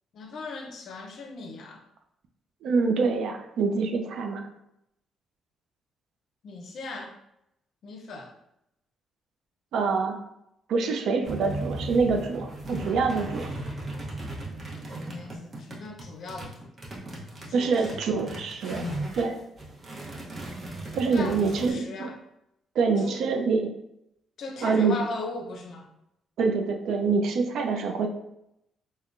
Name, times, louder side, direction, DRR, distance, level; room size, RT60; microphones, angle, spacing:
voice 1, 0.1-1.8 6.4-7.2 7.8-8.3 15.0-16.7 17.5-18.0 21.1-22.2 23.0-23.2 24.4-25.9, left 3 dB, 65° left, 4 dB, 0.5 m, -38 dB
voice 2, 2.6-4.4 9.7-10.2 10.7-13.5 17.5-18.9 19.2-19.4 20.9-22.1 22.8-23.7 24.6-25.0 26.4-28.1, right 4 dB, 75° right, 5 dB, 0.4 m, -25 dB
sound 1, 11.2-19.3 19.6-21.7, right 1 dB, 35° right, 0.8 m, -37 dB
3.6 x 2.1 x 2.4 m, 0.81 s
cardioid pair, 90°, 0 cm